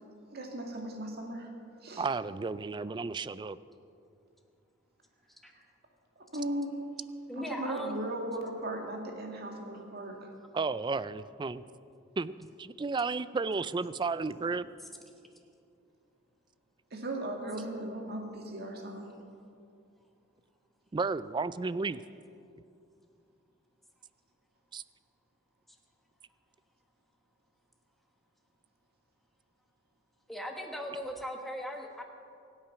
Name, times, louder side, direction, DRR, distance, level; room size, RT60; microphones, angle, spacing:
voice 1, 0.3-1.5 1.8-2.0 6.3-6.7 7.4-10.3 16.9-19.1, right 1 dB, 55° right, 2 dB, 2.1 m, -37 dB
voice 2, 2.0-3.6 10.5-11.6 12.2-14.7 20.9-22.0 24.7-24.8, right 4 dB, 25° right, 16 dB, 0.3 m, -33 dB
voice 3, 7.3-8.0 30.3-32.0, equal, ahead, 2 dB, 1.4 m, -38 dB
24.0 x 8.8 x 5.8 m, 2.5 s
head